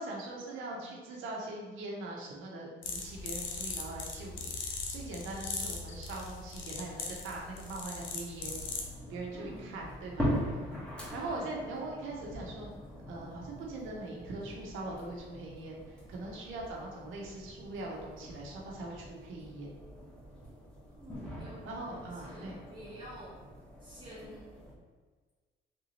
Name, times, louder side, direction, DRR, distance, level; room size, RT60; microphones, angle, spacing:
voice 1, 0.0-8.6 9.1-10.3 11.1-12.7 13.1-19.8 21.6-22.5, right 2 dB, 85° right, -2 dB, 0.8 m, -41 dB
voice 2, 0.5-0.9 9.3-9.8 11.1-11.6 20.9-23.4 23.8-24.5, equal, 25° right, -10 dB, 1.0 m, -50 dB
sound 1, 2.8-9.0, left 4 dB, 75° left, 0.6 m, -39 dB
sound 2, 8.4-24.7, equal, 5° left, 1.1 m, -42 dB
3.5 x 2.8 x 2.8 m, 1.4 s
cardioid pair, 90°, 20 cm